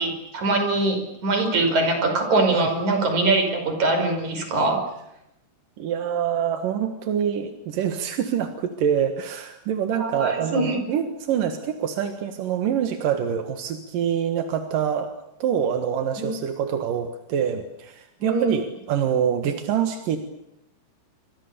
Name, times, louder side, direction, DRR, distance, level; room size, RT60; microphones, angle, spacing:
voice 1, 0.0-4.8 9.9-10.9 16.2-16.4 18.2-18.5, right 2 dB, 40° right, 5 dB, 6.4 m, -23 dB
voice 2, 5.8-15.1 15.4-20.2, right 8 dB, 60° right, 7 dB, 2.6 m, -25 dB
30.0 x 24.5 x 6.9 m, 0.83 s
omnidirectional pair, 5.6 m